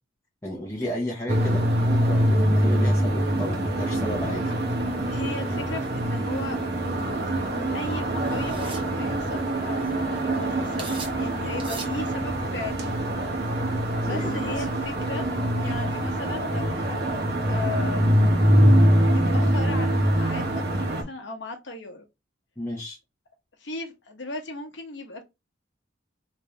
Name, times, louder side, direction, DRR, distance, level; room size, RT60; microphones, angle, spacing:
voice 1, 0.4-4.4 14.0-14.6 22.6-23.0, left 1 dB, 15° left, 0.9 m, -33 dB
sound 1, 1.3-21.0, right 1 dB, 55° right, 0.9 m, -24 dB
voice 2, 5.1-6.6 7.7-9.8 10.1-12.9 14.0-15.3 15.6-18.3 19.1-22.0 23.6-25.2, left 2 dB, 65° left, 1.0 m, -37 dB
sound 2, 6.8-7.0 8.2-8.9 9.6-9.7 9.8-10.1 10.8-11.2 11.6-12.0, right 3 dB, 25° right, 1.0 m, -39 dB
3.4 x 2.7 x 3.2 m
head